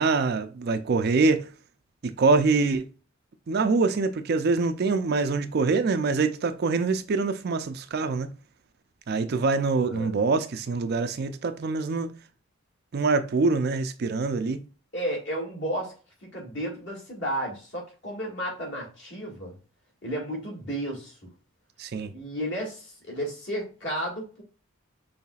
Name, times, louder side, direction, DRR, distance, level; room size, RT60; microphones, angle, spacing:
voice 1, 0.0-1.5 2.0-2.9 3.5-8.3 9.1-12.1 12.9-14.6 21.8-22.1, right 4 dB, 50° right, 0.4 m, -24 dB
voice 2, 9.8-10.2 14.9-15.9 16.3-19.6 20.0-21.3 22.1-24.4, equal, 55° left, 1.9 m, -33 dB
5.5 x 3.2 x 2.3 m
head